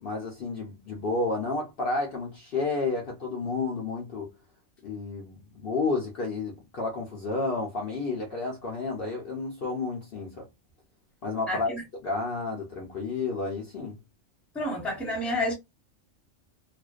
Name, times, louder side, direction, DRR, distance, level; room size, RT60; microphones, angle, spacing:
voice 1, 0.0-4.3 4.8-10.5 11.2-11.8 12.0-14.0, left 3 dB, 55° left, 0.7 m, -31 dB
voice 2, 11.5-11.8 14.5-15.5, left 1 dB, ahead, 0.7 m, -29 dB
2.4 x 2.1 x 2.3 m
omnidirectional pair, 1.4 m